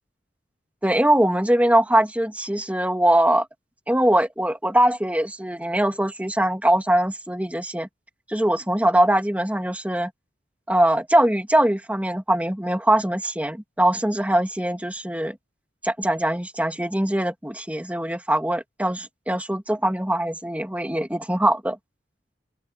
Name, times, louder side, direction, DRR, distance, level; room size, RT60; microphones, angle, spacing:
voice 1, 0.8-3.5 3.9-7.9 8.3-10.1 10.7-15.4 15.8-21.8, right 1 dB, 10° right, 2.5 m, -22 dB
open air
head